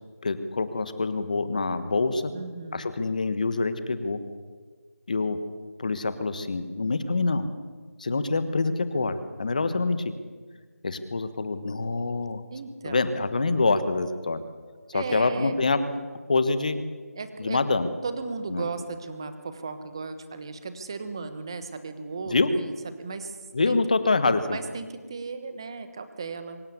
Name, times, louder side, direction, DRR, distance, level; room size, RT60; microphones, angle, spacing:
voice 1, 0.2-2.3 2.7-4.2 5.1-5.4 5.8-7.5 8.0-10.0 10.8-12.4 12.8-14.4 14.9-15.8 16.3-16.8 17.4-17.9 18.5-18.6 22.3-22.5 23.5-24.6, left 3 dB, 30° left, 12 dB, 1.3 m, -25 dB
voice 2, 2.3-3.0 8.1-8.2 12.5-13.1 14.9-15.6 17.1-17.6 18.0-23.4 23.7-23.8 24.5-26.6, right 4 dB, 15° right, 10 dB, 1.1 m, -36 dB
24.5 x 14.0 x 9.6 m, 1.5 s
figure-of-eight pair, 175°, 9 cm